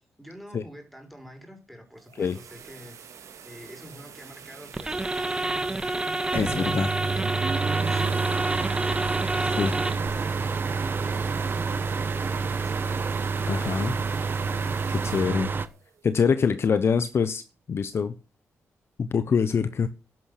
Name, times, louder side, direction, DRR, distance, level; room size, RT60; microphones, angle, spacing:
voice 1, 0.0-3.0 3.4-13.2, equal, ahead, 5.6 m, -46 dB
sound 1, 1.8-16.8, right 7 dB, 75° right, 2.2 m, -47 dB
sound 2, 4.7-10.1, right 2 dB, 15° right, 1.8 m, -29 dB
voice 2, 6.3-6.9 9.6-9.7 13.5-13.9 14.5-15.5 16.0-17.4 17.7-18.1 19.0-19.9, left 6 dB, 50° left, 1.1 m, -25 dB
sound 3, 6.3-15.7, right 4 dB, 40° right, 1.3 m, -28 dB
12.0 x 11.0 x 6.7 m
wide cardioid pair, 125°, 5 cm